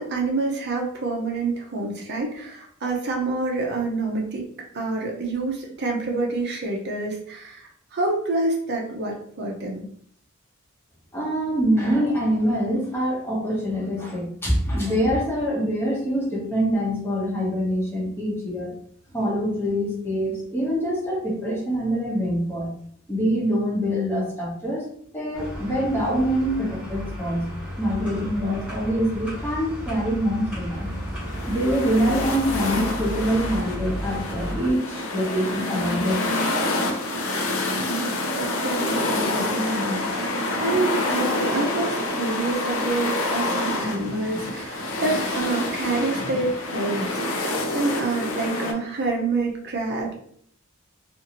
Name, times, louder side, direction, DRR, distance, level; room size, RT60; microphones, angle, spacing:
voice 1, 0.0-4.4 4.7-9.8 37.9-50.1, right 3 dB, 55° right, 0 dB, 0.6 m, -27 dB
voice 2, 11.1-18.7 19.1-22.7 23.1-24.9 25.1-27.5 27.8-30.9 31.5-36.4, equal, 10° left, -4 dB, 0.8 m, -25 dB
sound 1, 25.3-34.7, equal, 5° right, 1.1 m, -33 dB
sound 2, 30.7-48.7, left 2 dB, 65° left, 0.5 m, -27 dB
2.6 x 2.5 x 2.8 m, 0.62 s
head